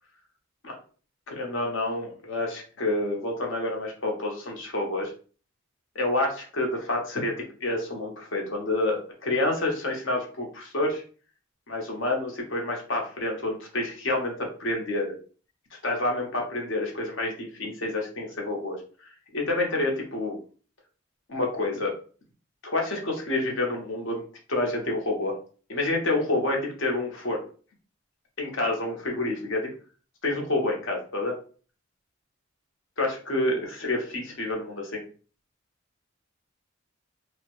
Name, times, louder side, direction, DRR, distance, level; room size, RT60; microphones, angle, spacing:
voice 1, 1.3-5.1 5.9-11.0 11.7-15.1 15.8-18.8 19.3-20.4 21.3-21.9 22.6-24.2 24.5-25.3 25.7-27.4 28.4-29.7 30.2-31.4 33.0-35.0, left 2 dB, 60° left, 1 dB, 0.8 m, -28 dB
2.7 x 2.0 x 2.9 m, 0.40 s
head